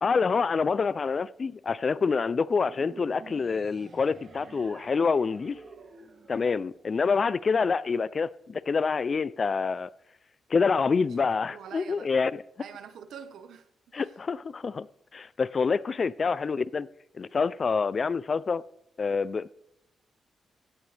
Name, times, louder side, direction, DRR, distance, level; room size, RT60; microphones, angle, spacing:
voice 1, 0.0-5.6 6.3-9.9 10.5-12.4 13.9-14.9 15.1-16.9 17.2-18.6 19.0-19.5, left 5 dB, 40° left, 0.5 m, -27 dB
sound 1, 2.6-7.1, right 3 dB, 50° right, 2.6 m, -49 dB
voice 2, 11.0-12.1 12.6-13.7 13.9-14.2, right 7 dB, 85° right, 1.3 m, -46 dB
17.0 x 14.0 x 3.4 m
cardioid pair, 115°, 0 cm